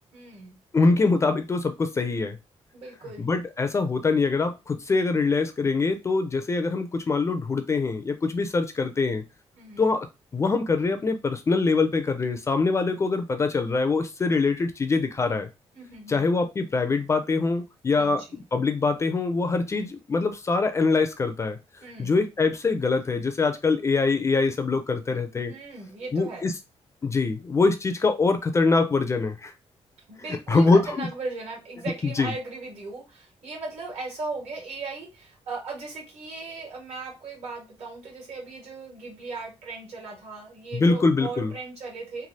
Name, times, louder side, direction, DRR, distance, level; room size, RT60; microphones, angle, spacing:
voice 1, 0.1-0.6 2.7-3.4 9.5-9.8 15.7-16.3 17.9-18.4 21.8-22.2 25.5-26.5 30.1-42.3, right 3 dB, 70° right, -1 dB, 1.5 m, -37 dB
voice 2, 0.7-2.4 3.2-9.2 9.8-10.1 10.3-15.5 16.1-21.6 22.0-25.5 26.1-26.5 27.0-29.5 30.5-31.1 32.0-32.3 40.7-41.5, left 3 dB, 25° left, 8 dB, 0.4 m, -24 dB
3.2 x 2.3 x 2.6 m, 0.25 s
wide cardioid pair, 160°, 11 cm